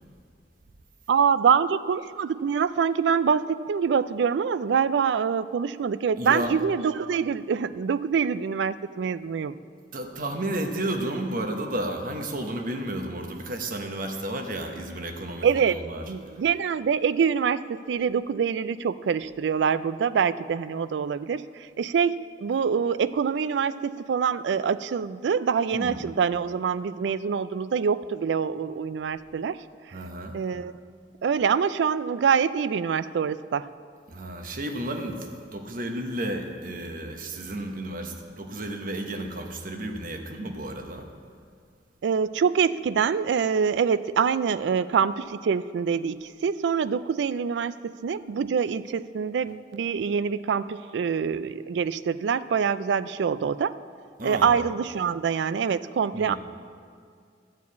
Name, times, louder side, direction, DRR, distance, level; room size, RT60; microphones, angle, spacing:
voice 1, 1.1-9.5 15.4-29.6 30.3-30.7 31.2-33.7 42.0-53.7 54.2-56.4, right 6 dB, 70° right, 16 dB, 0.3 m, -25 dB
voice 2, 6.2-6.6 9.9-16.0 25.7-26.0 29.9-30.4 34.1-41.1 54.2-54.5 56.1-56.4, right 1 dB, 50° right, 4 dB, 1.0 m, -32 dB
13.0 x 4.7 x 8.3 m, 2.2 s
head